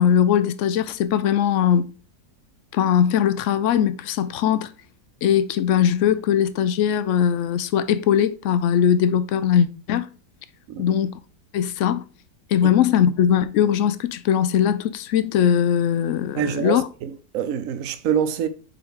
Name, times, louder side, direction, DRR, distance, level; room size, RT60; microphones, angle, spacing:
voice 1, 0.0-1.9 2.7-4.7 5.2-10.1 10.8-11.1 11.5-12.0 12.5-16.9, left 9 dB, 70° left, 0.7 m, -20 dB
voice 2, 16.4-18.5, right 8 dB, 65° right, 1.0 m, -25 dB
5.2 x 4.9 x 4.8 m
omnidirectional pair, 1.8 m